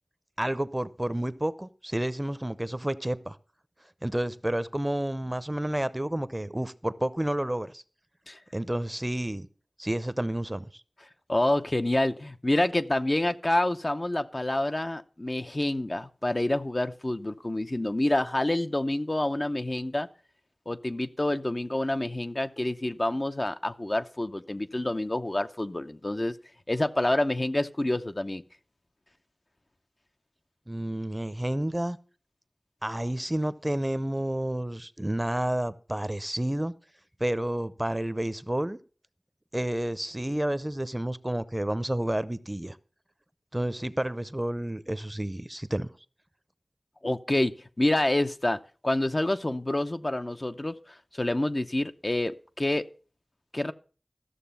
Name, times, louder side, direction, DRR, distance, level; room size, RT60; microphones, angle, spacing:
voice 1, 0.4-3.4 4.0-7.8 8.5-9.5 9.8-10.7 30.7-32.0 32.8-36.7 37.2-38.8 39.5-42.8 43.5-45.9, right 1 dB, 20° right, 0.6 m, -30 dB
voice 2, 11.3-20.1 20.7-26.3 26.7-28.4 47.0-52.9 53.5-53.7, left 1 dB, 40° left, 0.6 m, -28 dB
13.5 x 6.8 x 5.5 m
wide cardioid pair, 40°, 0 cm